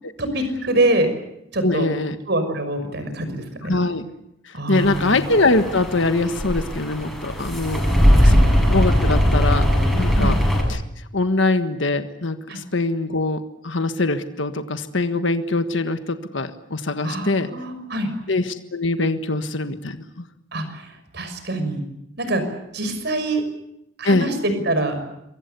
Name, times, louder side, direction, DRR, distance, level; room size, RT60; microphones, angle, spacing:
voice 1, 0.2-1.1 1.5-1.9 2.3-3.7 4.5-5.2 8.2-8.4 10.2-10.3 12.5-12.6 17.0-18.1 20.5-21.8 22.2-22.4 22.7-23.5 24.0-25.0, right 1 dB, 55° right, 9 dB, 6.0 m, -24 dB
voice 2, 1.6-2.2 3.6-4.0 4.4-7.8 8.2-8.3 8.7-10.4 10.7-10.8 11.1-17.5 18.3-20.2 24.0-24.3, left 2 dB, 70° left, 8 dB, 1.5 m, -23 dB
sound 1, 4.7-10.6, equal, ahead, 7.9 m, -19 dB
28.0 x 23.5 x 6.9 m, 0.82 s
head